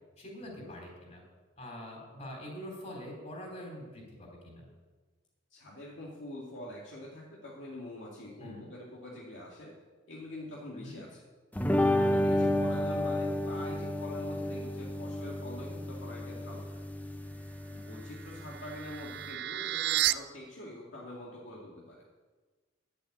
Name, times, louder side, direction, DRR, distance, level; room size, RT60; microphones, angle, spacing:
voice 1, 0.2-1.2 1.6-4.7 8.4-8.7 10.8-11.0, equal, 35° left, 0 dB, 3.8 m, -44 dB
voice 2, 5.5-9.7 10.1-11.2 12.1-16.8 17.7-22.0, left 1 dB, 70° left, -4 dB, 2.1 m, -45 dB
sound 1, 11.6-19.3, left 1 dB, 10° left, 0.6 m, -31 dB
sound 2, 17.9-20.1, right 15 dB, 60° right, 0.4 m, -32 dB
11.0 x 8.4 x 8.6 m, 1.3 s
head